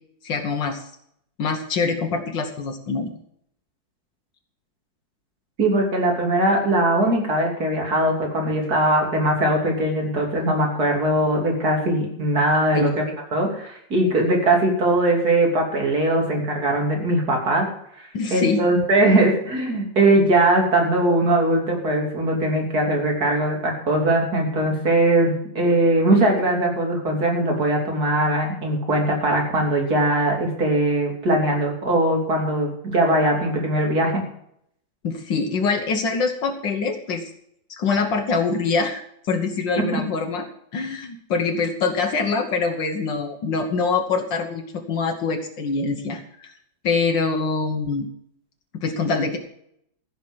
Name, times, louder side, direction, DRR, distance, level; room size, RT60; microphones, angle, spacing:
voice 1, 0.2-0.9 1.4-3.1 12.7-13.0 18.1-18.6 35.0-37.3 37.7-40.5 40.7-46.5 46.8-48.1 48.7-49.4, left 4 dB, 75° left, 4 dB, 1.9 m, -24 dB
voice 2, 5.6-13.0 13.3-17.7 18.3-34.2 39.8-40.0, right 1 dB, 55° right, 0 dB, 3.6 m, -20 dB
15.0 x 5.9 x 7.6 m, 0.72 s
omnidirectional pair, 2.1 m